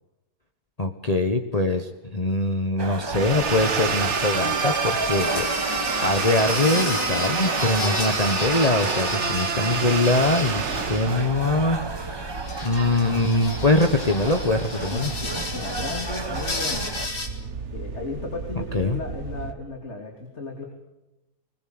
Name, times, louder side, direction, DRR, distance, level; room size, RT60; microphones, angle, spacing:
voice 1, 0.8-12.3 12.6-15.1 18.7-19.0, left 2 dB, 25° left, 5 dB, 1.3 m, -23 dB
sound 1, 2.8-17.1, right 3 dB, 20° right, 0.9 m, -33 dB
sound 2, 3.1-19.5, right 5 dB, 50° right, 1.6 m, -30 dB
sound 3, 5.2-11.3 12.3-17.3, left 3 dB, 85° left, 3.5 m, -33 dB
voice 2, 14.9-17.0 17.7-20.7, left 2 dB, 40° left, 2 dB, 3.3 m, -35 dB
21.0 x 21.0 x 7.9 m, 0.97 s
omnidirectional pair, 1.7 m